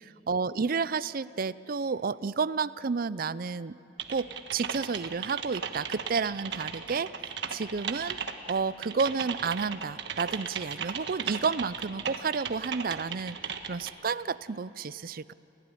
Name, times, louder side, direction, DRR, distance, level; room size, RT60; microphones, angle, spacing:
voice 1, 0.3-3.8 4.1-8.2 8.5-15.3, right 5 dB, 50° right, 17 dB, 0.5 m, -31 dB
Typing, 4.0-13.9, right 7 dB, 65° right, 1.4 m, -36 dB
29.5 x 17.0 x 9.8 m, 2.9 s
head